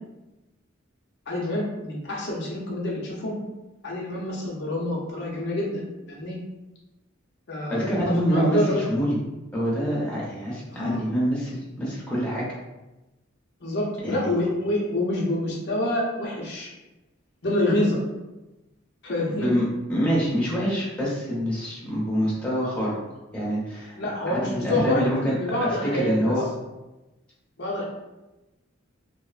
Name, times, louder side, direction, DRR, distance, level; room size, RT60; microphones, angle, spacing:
voice 1, 1.3-3.4 3.8-5.8 6.1-6.4 7.5-8.8 10.7-11.0 13.6-16.7 17.4-18.0 19.0-19.5 23.9-25.0 25.4-26.2 27.6-27.8, left 1 dB, 55° left, -3 dB, 0.6 m, -27 dB
voice 2, 7.7-9.2 9.5-12.5 14.0-14.3 19.3-19.6 19.9-23.0 23.3-24.0 24.3-25.3 25.6-26.4, equal, 5° left, -7 dB, 0.7 m, -25 dB
2.9 x 2.0 x 2.4 m, 1.0 s
head